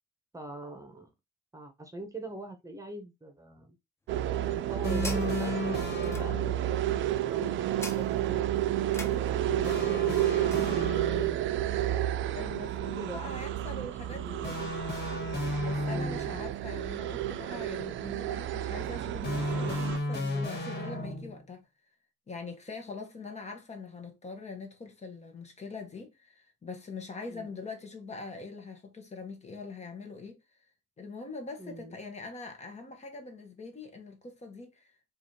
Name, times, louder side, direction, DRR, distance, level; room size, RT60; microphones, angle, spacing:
voice 1, 0.3-1.1 1.5-3.8 4.5-10.2 10.5-11.7 12.8-13.4 14.1-14.5 15.9-16.4 27.3-27.5 31.6-31.9, right 2 dB, 15° right, 1.0 m, -43 dB
sound 1, 4.1-20.0, right 12 dB, 75° right, 0.4 m, -31 dB
sound 2, 4.2-10.7, left 2 dB, 15° left, 0.8 m, -47 dB
sound 3, 4.8-6.7 9.6-11.5 14.4-16.4 19.2-21.4, left 2 dB, 55° left, 1.7 m, -34 dB
voice 2, 12.4-14.7 15.6-21.7 22.3-30.4 31.0-34.9, left 3 dB, 35° left, 1.0 m, -43 dB
4.8 x 2.6 x 2.8 m
cardioid pair, 90°, 20 cm